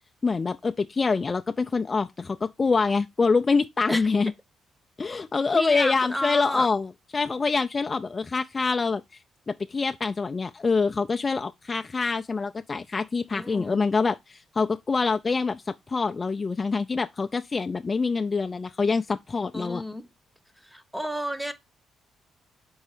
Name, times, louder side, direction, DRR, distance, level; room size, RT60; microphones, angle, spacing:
voice 1, 0.2-4.3 5.0-9.0 9.5-19.8, left 4 dB, 30° left, 0.4 m, -25 dB
voice 2, 5.5-6.7 13.3-13.8 19.5-20.1 20.6-21.5, equal, 5° right, 0.8 m, -31 dB
5.5 x 4.0 x 4.9 m
cardioid pair, 90°, 0 cm